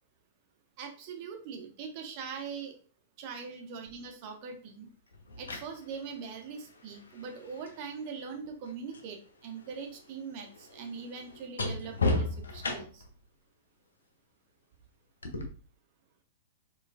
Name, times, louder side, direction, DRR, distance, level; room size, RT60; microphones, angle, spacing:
voice 1, 0.8-2.8 3.2-4.9 5.4-13.0, right 5 dB, 40° right, 4 dB, 0.6 m, -42 dB
sound 1, 3.9-4.0 5.1-9.1 9.4-13.2 15.2-15.4, left 2 dB, 70° left, 0.5 m, -36 dB
4.2 x 2.3 x 2.3 m, 0.38 s
figure-of-eight pair, 100°, 0 cm